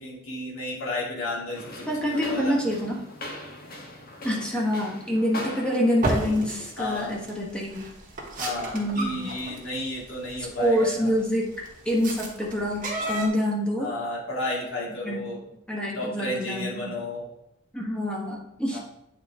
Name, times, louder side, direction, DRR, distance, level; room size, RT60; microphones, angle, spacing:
voice 1, 0.0-2.6 6.8-7.2 8.4-11.1 13.8-15.4 15.9-17.3 18.7-18.8, left 2 dB, 80° left, -5 dB, 2.5 m, -32 dB
sound 1, 1.5-6.6, left 1 dB, 45° left, 1.4 m, -40 dB
voice 2, 1.9-3.0 4.2-7.9 8.7-9.3 10.6-11.5 11.8-13.9 15.0-15.3 15.7-16.9 17.7-18.8, equal, 5° left, -3 dB, 1.3 m, -26 dB
sound 2, 6.0-13.3, right 2 dB, 40° right, 1.4 m, -33 dB
8.8 x 4.2 x 3.6 m, 0.81 s
head